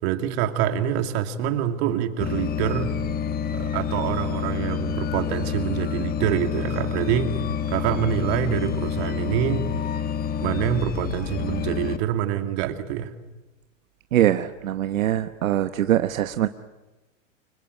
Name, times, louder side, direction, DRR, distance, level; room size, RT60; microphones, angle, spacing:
voice 1, 0.0-2.9 3.5-9.7 10.4-13.1, right 10 dB, 50° right, 8 dB, 2.6 m, -26 dB
sound 1, 2.2-12.0, left 8 dB, 25° left, 1.4 m, -28 dB
voice 2, 14.1-16.5, right 12 dB, 85° right, 10 dB, 1.1 m, -22 dB
25.5 x 22.5 x 9.8 m, 1.1 s
hypercardioid pair, 130°, 39 cm